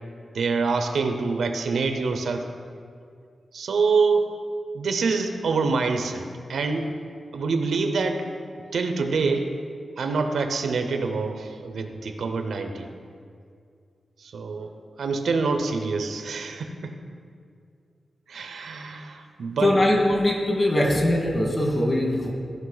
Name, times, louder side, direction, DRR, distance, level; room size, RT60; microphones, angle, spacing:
voice 1, 0.3-2.5 3.5-4.3 4.7-6.9 7.3-8.3 8.7-9.5 10.0-12.9 14.2-14.7 15.0-16.9 18.3-19.7, right 4 dB, 85° right, 6 dB, 0.7 m, -26 dB
voice 2, 19.6-22.3, left 1 dB, 30° left, -1 dB, 1.8 m, -21 dB
14.5 x 5.3 x 4.0 m, 2.3 s
wide cardioid pair, 115°, 0 cm